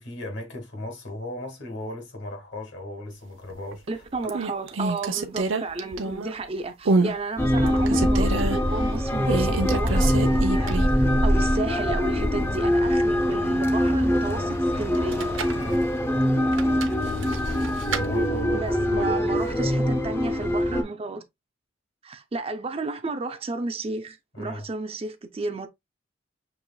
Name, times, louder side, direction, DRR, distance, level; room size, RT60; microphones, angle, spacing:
voice 1, 0.0-4.0 10.5-10.9 15.6-15.9 18.0-19.3 24.3-24.7, left 1 dB, 65° left, 1.6 m, -36 dB
sound 1, 3.5-3.9 4.3-6.4 6.8-7.2 7.6-8.6 9.3-11.0 11.4-11.5 14.9-15.6 16.5-18.1, right 3 dB, 80° right, 0.7 m, -27 dB
voice 2, 3.9-15.3 18.5-21.2 22.0-25.7, right 3 dB, 30° right, 0.5 m, -32 dB
sound 2, 7.4-20.8, equal, 15° left, 0.6 m, -23 dB
6.1 x 3.0 x 2.2 m
head